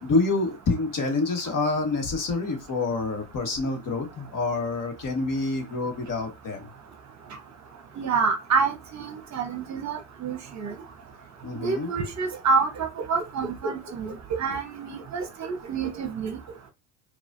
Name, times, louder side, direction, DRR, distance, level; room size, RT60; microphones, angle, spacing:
voice 1, 0.0-6.6 11.4-11.9, left 3 dB, 40° left, 1.5 m, -27 dB
voice 2, 8.0-10.7 11.6-16.4, right 5 dB, 35° right, 0.9 m, -28 dB
4.7 x 2.5 x 2.6 m
hypercardioid pair, 85°, 48 cm